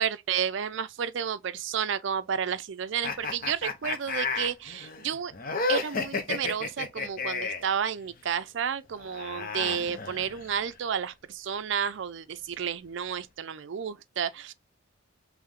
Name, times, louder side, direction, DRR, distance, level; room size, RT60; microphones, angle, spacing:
voice 1, 0.0-5.3 5.7-14.5, right 8 dB, 60° right, 0.4 m, -31 dB
sound 1, 3.0-7.7 8.9-10.6, left 4 dB, 45° left, 0.6 m, -32 dB
3.4 x 3.1 x 3.6 m
head